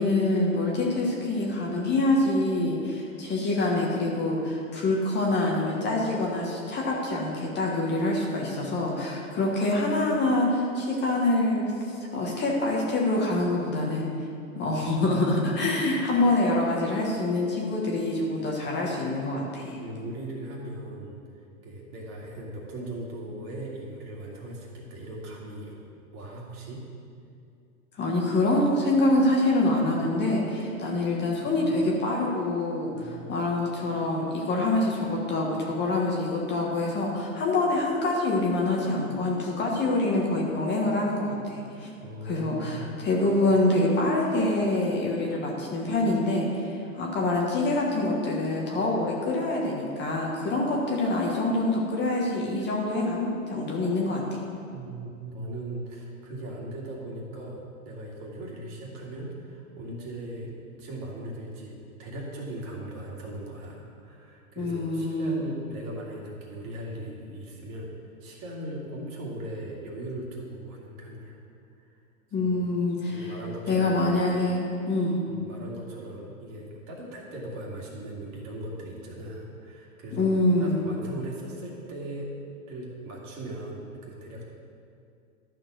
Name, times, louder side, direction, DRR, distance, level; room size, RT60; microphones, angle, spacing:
voice 1, 0.0-14.1 14.5-19.8 28.0-41.9 42.2-54.4 64.6-65.4 72.3-73.3 73.7-75.2 80.1-80.8, left 2 dB, 25° left, -2 dB, 1.3 m, -26 dB
voice 2, 19.8-25.8 26.1-26.8 29.9-30.0 32.9-33.4 41.5-41.7 42.0-43.0 54.7-71.4 71.8-71.9 72.4-72.6 73.1-74.2 75.3-82.3 82.7-84.5, right 1 dB, 40° right, -3 dB, 2.3 m, -39 dB
12.0 x 4.5 x 6.2 m, 2.5 s
hypercardioid pair, 120°, 43 cm